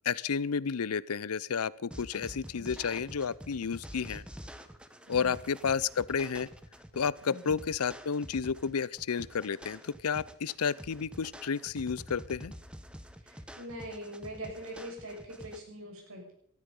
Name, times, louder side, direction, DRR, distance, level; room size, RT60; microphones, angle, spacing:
voice 1, 0.0-4.2 5.1-6.5 6.9-12.5, left 6 dB, 90° left, 21 dB, 0.6 m, -31 dB
sound 1, 1.9-15.6, equal, 5° right, 1.0 m, -47 dB
voice 2, 7.2-7.5 13.2-16.3, equal, 75° right, 0 dB, 6.8 m, -43 dB
19.0 x 13.5 x 5.4 m, 0.65 s
head